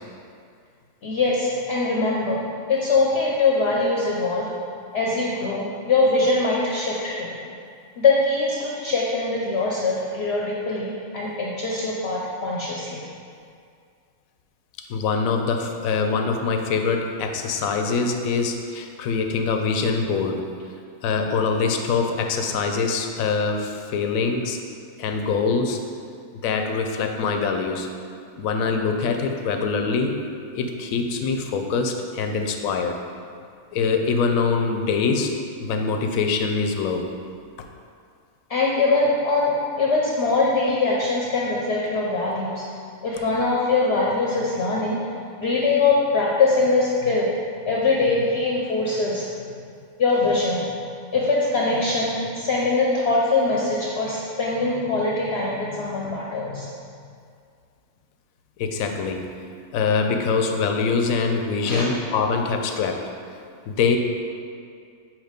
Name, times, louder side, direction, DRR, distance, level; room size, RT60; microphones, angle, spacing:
voice 1, 1.0-2.4 2.7-4.5 4.9-7.4 8.0-13.0 38.5-42.6 43.0-45.0 45.4-47.3 47.6-49.3 50.0-50.6 51.1-56.8 61.7-61.9, left 3 dB, 60° left, -4 dB, 0.9 m, -22 dB
voice 2, 14.9-20.4 21.0-24.6 25.0-25.8 26.4-27.9 28.4-30.1 30.5-33.0 33.7-35.3 35.6-37.1 58.6-59.3 59.7-63.0 63.7-64.0, left 4 dB, 80° left, 4 dB, 1.0 m, -24 dB
7.4 x 2.9 x 5.0 m, 2.3 s
omnidirectional pair, 1.4 m